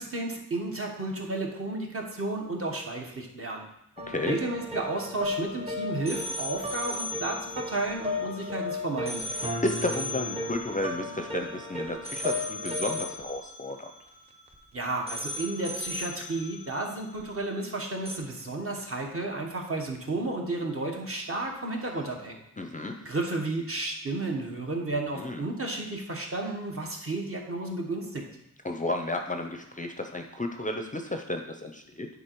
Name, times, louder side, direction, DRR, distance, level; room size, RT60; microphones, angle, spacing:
voice 1, 0.0-3.7 4.3-9.2 14.7-22.4 23.0-28.2, right 2 dB, 40° right, 1 dB, 1.2 m, -32 dB
sound 1, 4.0-14.6 15.1-17.8 18.1-18.2, left 2 dB, 20° right, 0.8 m, -35 dB
voice 2, 4.1-4.4 9.4-13.9 22.6-23.0 25.1-25.4 28.6-32.1, left 1 dB, 25° left, 4 dB, 0.5 m, -32 dB
9.7 x 4.1 x 4.5 m, 0.80 s
wide cardioid pair, 155°, 34 cm